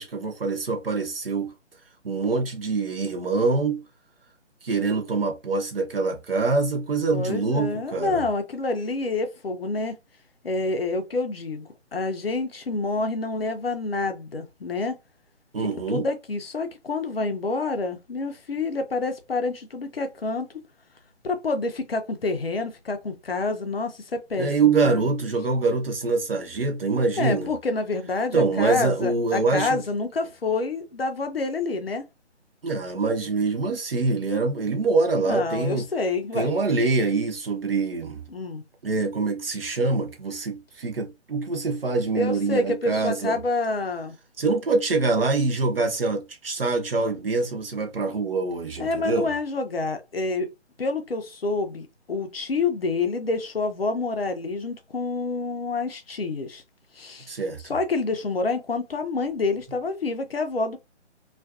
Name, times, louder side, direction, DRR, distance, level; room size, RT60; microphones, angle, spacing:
voice 1, 0.0-1.5 2.0-3.8 4.6-8.2 15.5-16.1 24.4-27.5 28.3-29.8 32.6-35.9 36.3-38.2 38.8-43.4 44.4-49.3 57.3-57.8, right 3 dB, 55° right, 0.8 m, -25 dB
voice 2, 7.1-10.0 10.4-15.0 15.9-20.5 21.2-25.0 27.2-32.0 35.2-36.5 38.3-38.6 42.1-44.2 48.8-50.5 50.8-56.6 57.0-57.3 57.7-60.8, left 3 dB, 55° left, 0.6 m, -28 dB
2.4 x 2.4 x 2.3 m
figure-of-eight pair, 145°, 36 cm